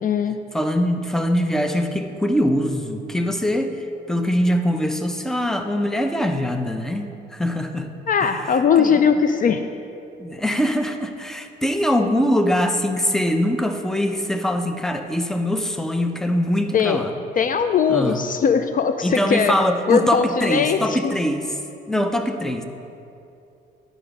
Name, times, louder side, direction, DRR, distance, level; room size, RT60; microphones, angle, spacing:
voice 1, 0.0-0.4 8.1-9.7 16.7-17.1 17.3-19.5 19.9-21.0, left 6 dB, 45° left, 8 dB, 0.4 m, -19 dB
voice 2, 0.5-7.9 8.2-8.3 8.8-8.9 10.2-17.1 17.9-18.2 19.0-21.4 21.9-22.6, equal, ahead, 6 dB, 0.6 m, -22 dB
10.5 x 5.1 x 5.2 m, 2.7 s
cardioid pair, 90°, 20 cm